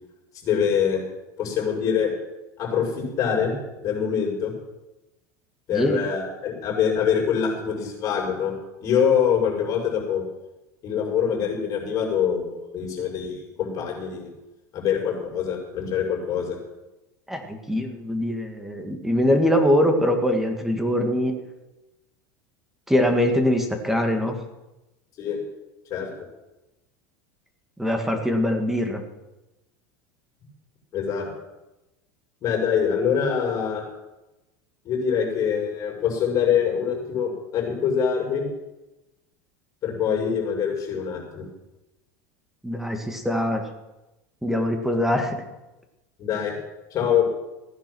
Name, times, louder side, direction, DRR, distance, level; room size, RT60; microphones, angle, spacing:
voice 1, 0.4-1.0 1.4-2.1 2.6-3.5 3.8-4.5 5.7-8.5 8.8-10.2 10.8-14.3 14.7-16.6 25.2-25.4 25.9-26.1 30.9-31.3 32.4-33.8 34.8-38.4 39.8-41.4 46.2-46.5 46.9-47.3, left 7 dB, 35° left, -2 dB, 5.9 m, -24 dB
voice 2, 5.7-6.0 17.3-21.3 22.9-24.4 27.8-29.0 42.6-43.6 44.4-45.4, left 1 dB, 5° right, 4 dB, 2.0 m, -23 dB
16.0 x 10.0 x 6.3 m, 1.0 s
supercardioid pair, 140°, 9 cm